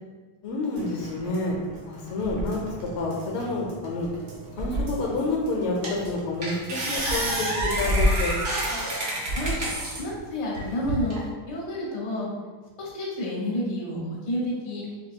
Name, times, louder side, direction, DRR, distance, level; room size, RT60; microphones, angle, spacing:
voice 1, 0.4-1.6 1.9-2.6 2.9-4.1 4.6-8.3, left 2 dB, 80° left, -1 dB, 1.5 m, -28 dB
sound 1, 0.8-10.2 10.5-10.6, right 2 dB, 75° right, 1.8 m, -38 dB
sound 2, 5.2-5.3 5.8-6.1 6.4-10.0 10.5-11.2, equal, 45° right, 1.0 m, -27 dB
voice 2, 10.0-11.2 11.5-12.3 12.8-14.8, left 1 dB, 50° left, -4 dB, 1.1 m, -30 dB
6.0 x 2.6 x 2.2 m, 1.4 s
omnidirectional pair, 2.4 m